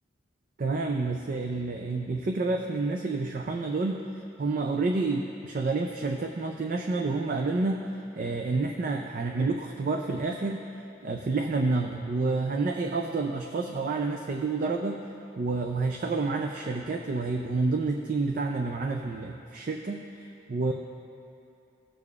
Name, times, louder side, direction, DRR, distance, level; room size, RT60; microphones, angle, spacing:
voice 1, 0.6-4.1 4.4-10.7 11.0-15.0 15.4-20.1 20.5-20.7, right 3 dB, 45° right, 3 dB, 0.4 m, -29 dB
17.0 x 6.7 x 2.4 m, 2.7 s
head